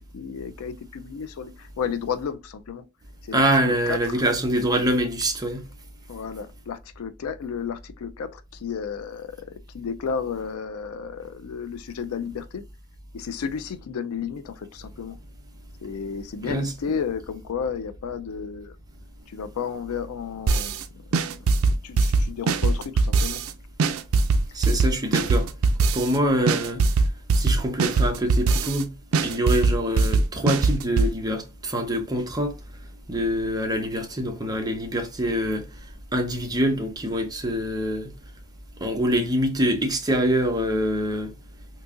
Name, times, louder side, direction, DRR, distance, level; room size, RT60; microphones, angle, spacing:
voice 1, 0.0-2.8 3.2-4.2 6.1-12.6 13.1-15.2 15.8-18.7 19.3-23.4, left 6 dB, 80° left, 0.4 m, -33 dB
voice 2, 3.3-5.6 16.4-16.7 24.5-25.5 25.9-26.8 27.3-28.9 29.2-32.5 33.1-35.7 36.1-38.1 38.8-41.3, equal, 20° right, 0.7 m, -25 dB
sound 1, 20.5-20.8 21.1-23.5 23.8-26.2 26.5-28.8 29.1-31.1, right 3 dB, 70° right, 0.4 m, -21 dB
3.8 x 2.8 x 2.4 m
head